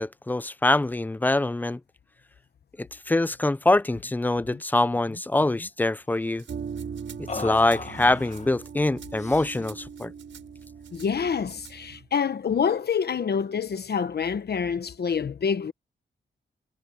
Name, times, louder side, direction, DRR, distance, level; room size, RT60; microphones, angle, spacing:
voice 1, 0.0-1.8 2.8-6.4 7.3-10.1, left 2 dB, 10° left, 0.4 m, -24 dB
sound 1, 3.9-4.1 4.4-4.6 4.9-5.7 7.3-8.5 9.2-9.8, left 4 dB, 35° left, 1.7 m, -38 dB
Rattle (instrument), 6.4-11.1 11.5-11.8, right 8 dB, 90° right, 6.8 m, -51 dB
sound 2, 6.5-12.1, right 6 dB, 60° right, 4.1 m, -40 dB
voice 2, 10.9-15.7, left 6 dB, 60° left, 1.2 m, -27 dB
wide cardioid pair, 110°, 19 cm